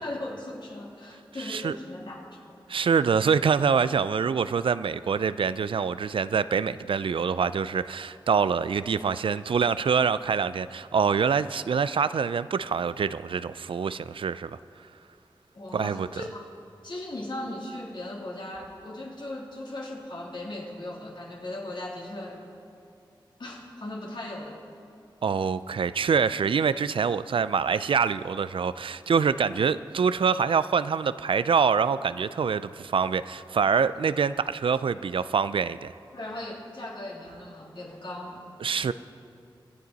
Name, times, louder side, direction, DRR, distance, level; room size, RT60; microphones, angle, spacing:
voice 1, 0.0-3.2 15.5-16.4 16.8-22.4 23.4-24.6 36.1-38.5, left 1 dB, 60° left, -3 dB, 3.1 m, -38 dB
voice 2, 2.7-14.6 15.7-16.1 25.2-35.9 38.6-38.9, right 6 dB, 75° right, 15 dB, 0.3 m, -25 dB
24.5 x 8.6 x 4.0 m, 2.6 s
cardioid pair, 40°, 9 cm